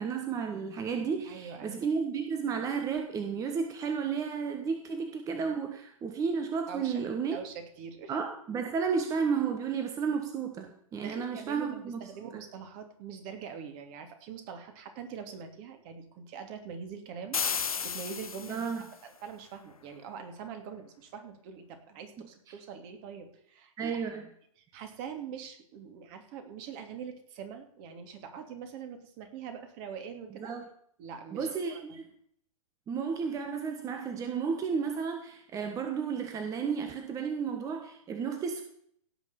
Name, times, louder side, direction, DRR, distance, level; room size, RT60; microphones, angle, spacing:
voice 1, 0.0-7.4 8.1-12.0 18.5-18.8 23.8-24.2 30.4-30.6 31.3-32.1 32.9-38.6, right 6 dB, 20° right, 6 dB, 1.3 m, -32 dB
voice 2, 1.2-1.8 6.7-6.9 7.3-8.1 11.0-24.0 24.7-30.5 31.0-31.8, right 7 dB, 35° right, 6 dB, 2.8 m, -43 dB
sound 1, 17.3-18.9, left 6 dB, 90° left, 0.7 m, -33 dB
17.0 x 6.2 x 7.1 m, 0.65 s
hypercardioid pair, 125°, 18 cm